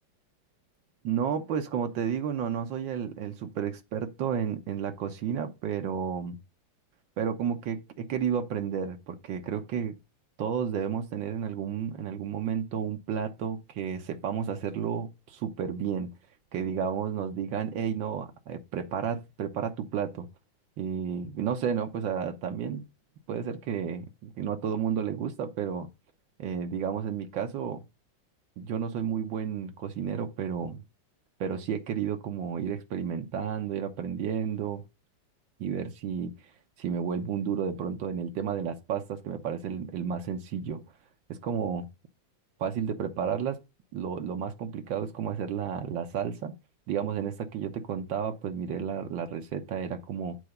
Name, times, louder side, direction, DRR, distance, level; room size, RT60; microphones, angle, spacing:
voice 1, 1.0-6.4 7.2-10.0 10.4-16.1 16.5-20.3 20.8-22.8 23.3-25.9 26.4-27.8 28.6-30.8 31.4-34.8 35.6-36.3 36.8-40.8 41.3-41.9 42.6-43.6 43.9-46.5 46.9-50.4, right 7 dB, 80° right, 1.7 m, -32 dB
8.4 x 3.9 x 5.4 m
omnidirectional pair, 2.1 m